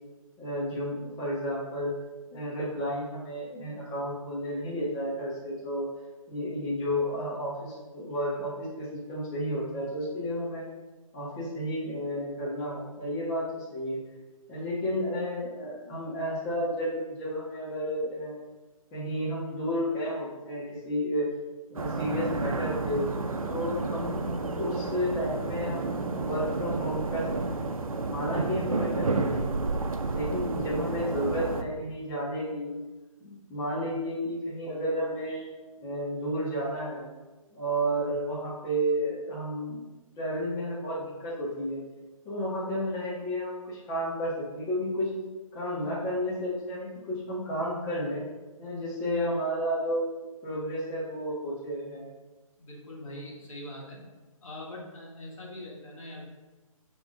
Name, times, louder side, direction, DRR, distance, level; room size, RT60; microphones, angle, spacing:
voice 1, 0.4-1.9 2.3-5.9 6.3-10.6 11.1-14.0 14.5-18.4 18.9-21.2 21.7-23.1 23.5-27.2 27.5-27.7 28.1-29.7 30.1-32.7 33.2-35.4 35.8-37.1 37.5-39.8 40.2-41.8 42.2-45.1 45.5-48.2 48.6-50.0 50.4-52.1, equal, 15° left, -8 dB, 1.4 m, -32 dB
sound 1, 21.8-31.6, right 3 dB, 75° right, 0.7 m, -31 dB
voice 2, 52.6-54.0 54.4-56.3, left 1 dB, 65° left, -3 dB, 2.0 m, -42 dB
10.5 x 3.7 x 2.5 m, 1.2 s
figure-of-eight pair, 145°, 18 cm